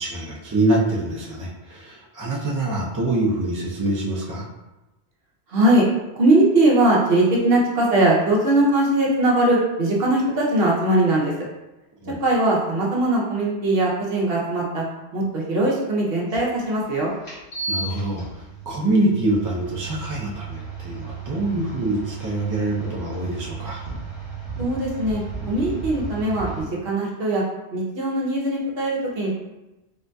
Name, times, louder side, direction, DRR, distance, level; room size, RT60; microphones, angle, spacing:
voice 1, 0.0-4.5 12.0-12.1 17.7-23.8, right 2 dB, 25° right, -4 dB, 0.4 m, -25 dB
voice 2, 5.5-5.9 6.1-11.3 12.2-14.8 15.1-17.1 24.6-25.2 25.5-27.4 27.7-29.3, right 1 dB, 65° right, -3 dB, 0.9 m, -20 dB
sound 1, 16.3-16.4 17.2-26.6, right 5 dB, 70° left, 1.6 m, -34 dB
3.6 x 2.6 x 2.2 m, 1.0 s
omnidirectional pair, 1.1 m